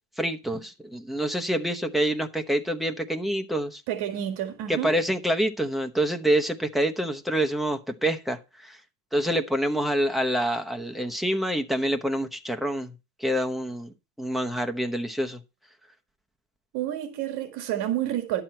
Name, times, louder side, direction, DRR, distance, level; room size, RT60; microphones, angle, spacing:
voice 1, 0.2-3.8 4.7-8.8 9.1-12.9 13.2-13.9 14.2-15.4, right 1 dB, ahead, 0.9 m, -26 dB
voice 2, 3.9-5.0 16.7-18.4, right 11 dB, 65° right, 1.9 m, -29 dB
11.5 x 7.8 x 4.4 m
cardioid pair, 160°, 41 cm